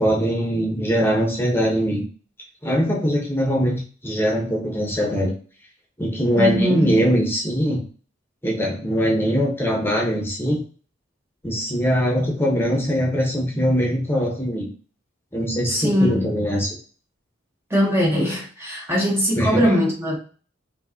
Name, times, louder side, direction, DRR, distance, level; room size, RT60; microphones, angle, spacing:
voice 1, 0.0-2.0 2.6-5.3 6.0-7.8 8.4-10.6 11.4-14.7 15.3-16.7 19.3-19.7, equal, 10° left, 1.1 m, -22 dB
voice 2, 6.4-7.0 15.7-16.3 17.7-20.2, equal, 10° right, 1.1 m, -21 dB
5.3 x 3.0 x 2.8 m
head